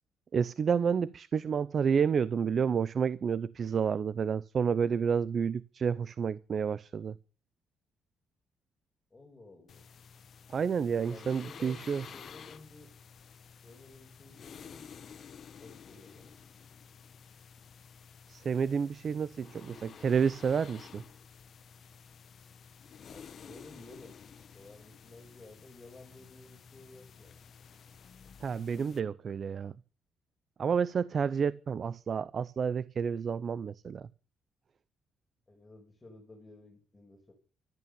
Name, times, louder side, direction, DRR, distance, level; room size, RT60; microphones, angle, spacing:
voice 1, 0.3-7.1 10.5-12.0 18.3-21.0 28.4-29.7 30.6-34.1, right 6 dB, 50° right, 0.6 m, -30 dB
voice 2, 9.1-9.9 11.1-11.8 12.1-12.9 13.6-15.1 15.6-16.4 23.0-24.2 24.5-27.4 35.5-37.3, left 2 dB, 20° left, 6.2 m, -53 dB
sound 1, 9.7-29.0, left 7 dB, 55° left, 1.0 m, -52 dB
13.5 x 11.0 x 7.0 m
supercardioid pair, 75°, 0 cm